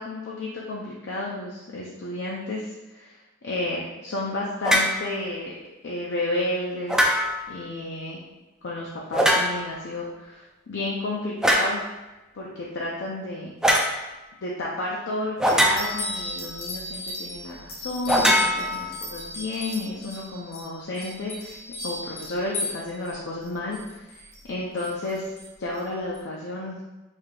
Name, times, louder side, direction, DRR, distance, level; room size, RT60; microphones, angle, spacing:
voice 1, 0.0-5.5 5.8-7.1 7.5-8.2 8.6-11.8 12.3-13.6 14.4-24.2 24.5-25.3 25.6-26.8, left 2 dB, 55° left, -4 dB, 0.5 m, -32 dB
sound 1, 4.6-5.0 6.9-7.5 9.1-9.8 11.4-11.8 13.6-13.9 15.4-16.2 18.1-19.2, equal, 5° right, 0.3 m, -22 dB
sound 2, 15.4-23.1 23.4-24.4 24.8-25.5 25.7-25.8 26.1-26.2, left 1 dB, 80° left, 1.1 m, -36 dB
3.5 x 2.7 x 3.8 m, 1.1 s
head